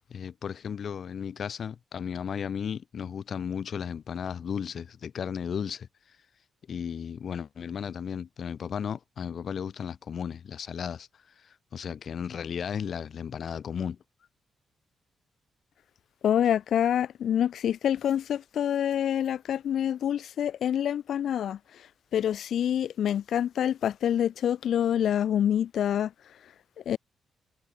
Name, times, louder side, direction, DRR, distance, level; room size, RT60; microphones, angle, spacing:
voice 1, 0.1-5.9 6.7-11.1 11.4-14.0, left 7 dB, 45° left, 4.1 m, -35 dB
voice 2, 16.2-21.6 22.1-26.1 26.9-27.0, left 9 dB, 60° left, 0.5 m, -26 dB
wide cardioid pair, 180°, 0 cm